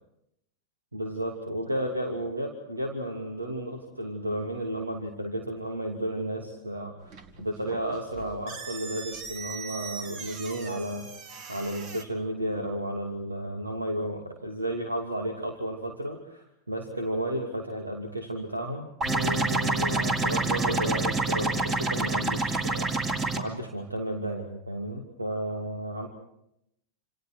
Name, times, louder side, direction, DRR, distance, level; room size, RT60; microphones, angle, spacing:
voice 1, 0.9-11.0 11.5-18.9 19.1-22.9 23.4-26.1, right 1 dB, 80° right, 2 dB, 2.8 m, -33 dB
sound 1, 7.0-12.0, right 5 dB, 40° right, 2.4 m, -41 dB
sound 2, 19.0-23.4, right 2 dB, 25° right, 3.5 m, -27 dB
28.5 x 28.0 x 4.7 m, 0.78 s
figure-of-eight pair, 90°, 0 cm